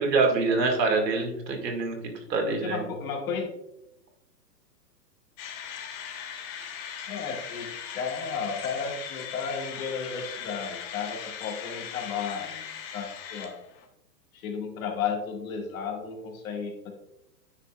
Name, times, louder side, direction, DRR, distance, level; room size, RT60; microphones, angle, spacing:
voice 1, 0.0-2.0 2.3-2.8, right 3 dB, 75° right, 2 dB, 2.2 m, -25 dB
voice 2, 2.5-3.5 7.1-12.6 12.9-13.6 14.3-16.9, left 6 dB, 55° left, 1 dB, 2.1 m, -33 dB
sound 1, 5.4-13.9, left 8 dB, 35° left, 1.2 m, -39 dB
9.6 x 5.5 x 2.4 m, 0.85 s
hypercardioid pair, 135°, 50 cm